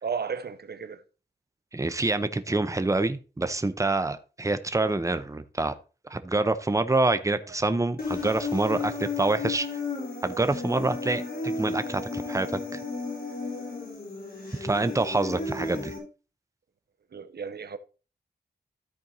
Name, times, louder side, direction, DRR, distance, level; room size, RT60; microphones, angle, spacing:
voice 1, 0.0-1.0 17.1-17.8, right 6 dB, 70° right, 0.7 m, -33 dB
voice 2, 1.7-5.7 6.1-9.7 10.2-12.8 14.6-15.9, right 2 dB, 20° right, 0.8 m, -26 dB
Human voice, 8.0-16.0, left 3 dB, 60° left, 3.9 m, -33 dB
13.5 x 4.5 x 4.0 m
wide cardioid pair, 75°, 18 cm